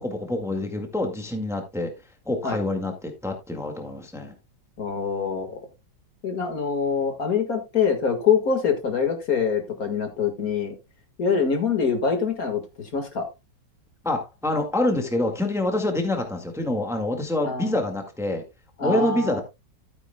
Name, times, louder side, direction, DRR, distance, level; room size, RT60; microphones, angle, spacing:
voice 1, 0.0-1.9 2.2-4.3 14.0-18.4 18.8-19.4, left 1 dB, ahead, 1.7 m, -26 dB
voice 2, 4.8-5.6 6.2-10.7 11.2-13.2 17.4-17.7 18.8-19.4, left 6 dB, 55° left, 2.2 m, -24 dB
13.0 x 8.8 x 2.2 m
omnidirectional pair, 1.9 m